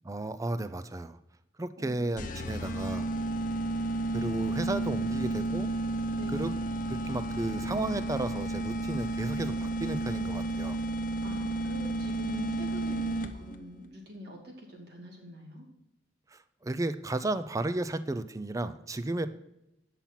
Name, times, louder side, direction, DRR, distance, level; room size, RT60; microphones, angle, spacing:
voice 1, 0.0-1.2 1.6-3.0 4.1-5.7 6.3-6.5 6.9-10.8 16.3-19.3, right 2 dB, 20° right, 13 dB, 0.4 m, -33 dB
sound 1, 2.2-13.6, right 2 dB, 50° left, 0.8 m, -32 dB
voice 2, 6.1-6.6 11.2-15.7, equal, 65° right, -1 dB, 2.5 m, -45 dB
8.9 x 5.8 x 5.7 m, 0.85 s
head